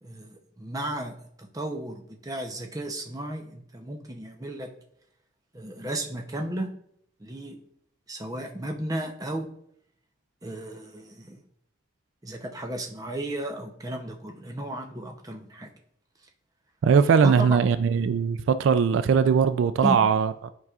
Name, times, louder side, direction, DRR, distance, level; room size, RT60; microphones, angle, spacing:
voice 1, 0.0-4.7 5.5-6.7 7.2-7.6 8.1-9.5 10.4-11.4 12.2-15.7 17.2-17.6 19.8-20.0, right 1 dB, 20° right, 0.7 m, -34 dB
voice 2, 16.8-20.5, right 6 dB, 85° right, 0.3 m, -20 dB
12.0 x 4.7 x 2.4 m
head